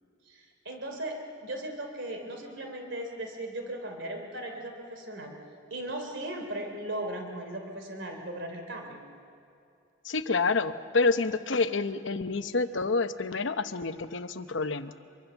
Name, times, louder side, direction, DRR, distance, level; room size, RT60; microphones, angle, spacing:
voice 1, 0.3-5.4 5.7-9.0, right 1 dB, 60° right, 4 dB, 3.2 m, -37 dB
voice 2, 10.0-14.9, left 3 dB, 65° left, 10 dB, 0.9 m, -28 dB
25.5 x 23.5 x 7.1 m, 2.5 s
head